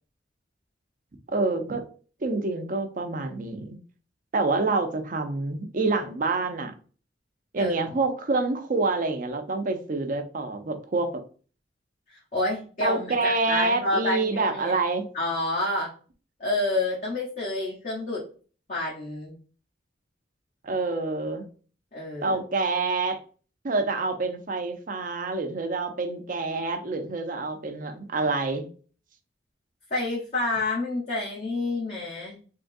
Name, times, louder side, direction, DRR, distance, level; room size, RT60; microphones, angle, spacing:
voice 1, 1.3-1.8 2.2-3.8 4.3-6.7 7.5-11.1 12.8-15.1 20.6-21.5 22.2-23.2 23.6-28.7, right 3 dB, 50° right, 0.6 m, -27 dB
voice 2, 12.1-14.8 15.1-15.9 16.4-18.2 18.7-19.4 21.9-22.4 29.9-32.4, left 2 dB, 45° left, 1.0 m, -29 dB
3.6 x 3.0 x 2.6 m
head